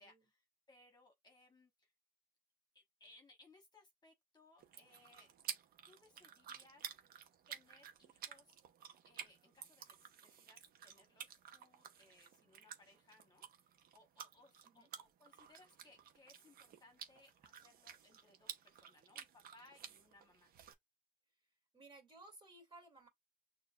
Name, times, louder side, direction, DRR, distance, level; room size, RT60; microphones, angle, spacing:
voice 1, 0.0-1.9 2.7-5.3 5.8-6.9 7.5-8.6 9.0-20.5, left 2 dB, 25° left, 1.4 m, -66 dB
sound 1, 4.6-20.7, right 8 dB, 60° right, 0.9 m, -53 dB
voice 2, 21.7-23.1, right 2 dB, 30° right, 2.5 m, -59 dB
6.3 x 2.8 x 2.4 m
cardioid pair, 110°, 17 cm